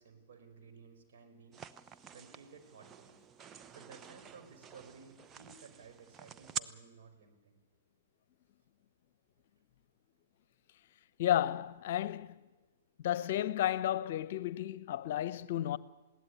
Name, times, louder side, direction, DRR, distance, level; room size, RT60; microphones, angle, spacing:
voice 1, 0.0-1.6 2.1-3.2 3.7-7.6, right 5 dB, 55° right, 4.8 m, -56 dB
sound 1, 1.5-6.6, right 8 dB, 20° right, 0.9 m, -47 dB
voice 2, 11.2-12.4 13.0-15.8, left 12 dB, 50° left, 0.9 m, -32 dB
21.0 x 16.5 x 9.9 m
figure-of-eight pair, 110°, 0 cm